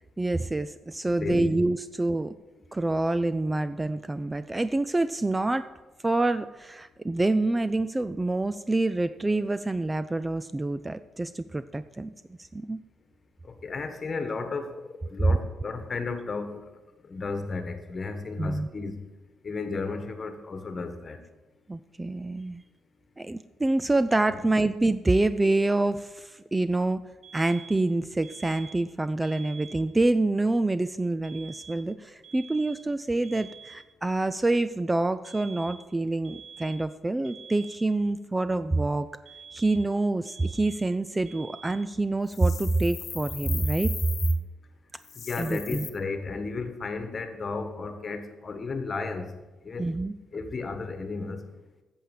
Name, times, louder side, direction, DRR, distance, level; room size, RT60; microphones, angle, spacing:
voice 1, 0.2-2.3 2.7-5.7 6.0-12.1 12.4-12.8 15.3-15.4 18.4-18.7 21.7-22.6 23.2-27.0 27.3-39.1 39.5-43.9 44.2-44.4 45.4-45.9 49.8-50.1, right 2 dB, 15° right, 13 dB, 0.3 m, -26 dB
voice 2, 1.1-1.5 13.4-16.6 17.0-19.0 19.4-21.2 24.3-24.4 45.2-49.3 49.6-49.9 50.3-51.4, left 4 dB, 35° left, 8 dB, 1.4 m, -33 dB
sound 1, 27.2-27.9 28.2-28.9 29.2-29.9 31.2-31.9 32.2-32.9 33.2-33.9 35.2-35.9 36.2-36.9 37.2-37.9 39.3-39.9 40.3-40.9 41.3-41.9, right 6 dB, 55° right, 2.0 m, -47 dB
sound 2, 42.3-44.4 45.0-45.9, left 7 dB, 55° left, 0.9 m, -38 dB
8.4 x 7.2 x 7.5 m, 1.1 s
cardioid pair, 90°, 0 cm